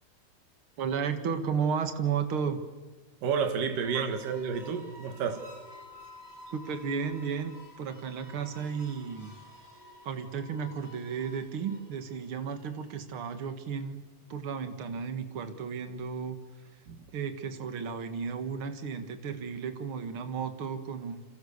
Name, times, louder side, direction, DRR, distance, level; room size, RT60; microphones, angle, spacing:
voice 1, 0.8-2.6 3.9-4.1 6.5-9.3 10.0-14.0 14.3-16.4 17.1-21.2, right 6 dB, 45° right, 2.0 m, -33 dB
voice 2, 3.2-5.5 16.9-17.0, right 6 dB, 60° right, 3.5 m, -30 dB
sound 1, 3.7-13.1, left 1 dB, 5° right, 4.7 m, -52 dB
29.0 x 26.5 x 6.8 m
omnidirectional pair, 4.4 m